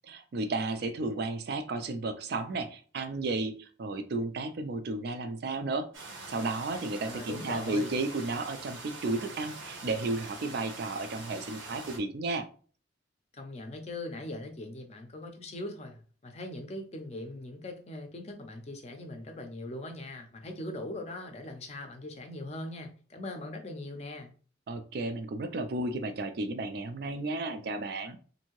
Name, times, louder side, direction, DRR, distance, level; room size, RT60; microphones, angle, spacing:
voice 1, 0.1-5.9 6.3-12.5 24.7-28.2, right 2 dB, 55° right, 0.4 m, -33 dB
sound 1, 5.9-12.0, right 3 dB, 85° right, 0.9 m, -44 dB
voice 2, 7.1-7.9 13.3-24.3, left 1 dB, 35° left, 0.5 m, -40 dB
2.7 x 2.6 x 3.0 m
head